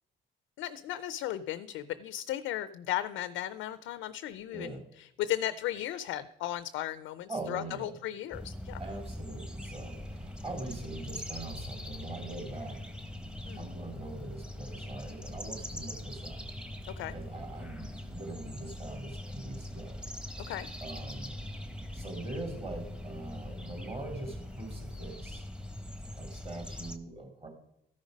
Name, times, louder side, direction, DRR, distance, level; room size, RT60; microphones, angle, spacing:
voice 1, 0.6-8.8 13.5-13.7 17.0-17.1 20.5-20.7, left 12 dB, 90° left, 13 dB, 0.4 m, -36 dB
voice 2, 7.3-8.0 8.8-12.8 13.6-16.4 17.1-20.0 20.3-20.4 20.8-21.3 21.9-25.5 26.1-27.5, right 2 dB, 30° right, 2 dB, 3.0 m, -42 dB
sound 1, 8.3-27.0, left 1 dB, 5° right, 0.9 m, -42 dB
13.5 x 5.2 x 5.1 m, 0.78 s
cardioid pair, 90°, 20 cm